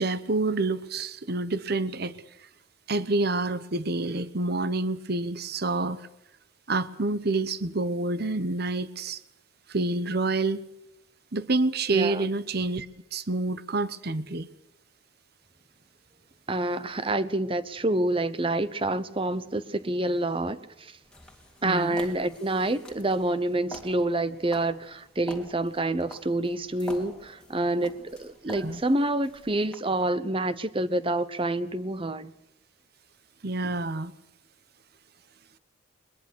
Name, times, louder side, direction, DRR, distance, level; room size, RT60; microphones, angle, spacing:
voice 1, 0.0-2.1 2.9-6.0 6.7-9.2 9.7-10.6 11.3-12.9 13.1-14.5 21.6-22.0 28.6-28.8 33.4-34.1, right 2 dB, 55° right, 15 dB, 1.0 m, -28 dB
voice 2, 11.9-12.3 16.5-20.9 21.6-32.3, right 2 dB, 25° right, 14 dB, 0.9 m, -27 dB
sound 1, 21.0-29.7, left 1 dB, 5° left, 3.2 m, -47 dB
21.5 x 21.5 x 6.4 m, 0.84 s
head